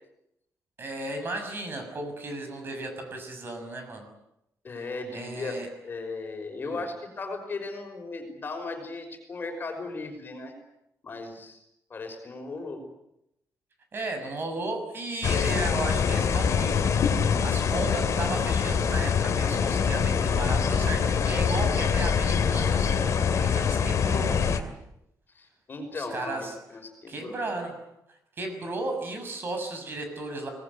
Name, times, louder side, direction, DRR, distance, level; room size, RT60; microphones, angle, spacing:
voice 1, 0.8-4.1 5.1-5.7 6.6-6.8 13.9-16.9 17.2-24.6 25.9-26.5 27.1-27.7 28.4-30.5, right 2 dB, 35° right, 5 dB, 6.6 m, -34 dB
voice 2, 4.6-5.6 5.8-10.5 11.0-11.6 11.9-12.8 25.3-27.6, left 3 dB, 35° left, 4 dB, 5.6 m, -37 dB
sound 1, 15.2-24.6, left 6 dB, 55° left, 2.7 m, -24 dB
25.5 x 19.5 x 9.7 m, 0.81 s
wide cardioid pair, 175°, 6 cm